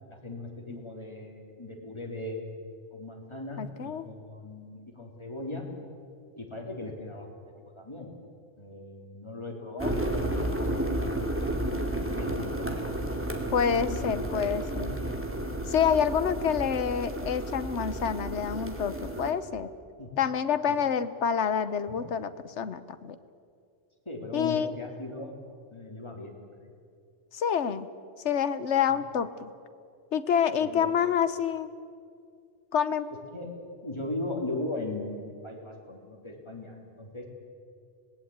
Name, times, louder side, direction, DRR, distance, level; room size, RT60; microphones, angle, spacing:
voice 1, 0.1-5.6 6.4-7.4 7.8-8.1 8.6-10.4 12.1-12.7 13.7-15.0 20.0-20.2 20.7-20.9 21.9-22.0 24.1-25.3 25.7-26.7 30.6-31.0 33.3-37.2, left 2 dB, 25° left, 0 dB, 3.9 m, -39 dB
voice 2, 3.6-4.1 13.5-14.9 15.7-19.7 20.2-23.2 24.3-24.7 27.3-27.9 28.2-29.5 30.1-31.7 32.7-33.1, left 7 dB, 70° left, 12 dB, 1.3 m, -27 dB
sound 1, 9.8-19.3, right 1 dB, 10° right, 2.7 m, -32 dB
26.0 x 19.5 x 8.9 m, 2.3 s
omnidirectional pair, 1.2 m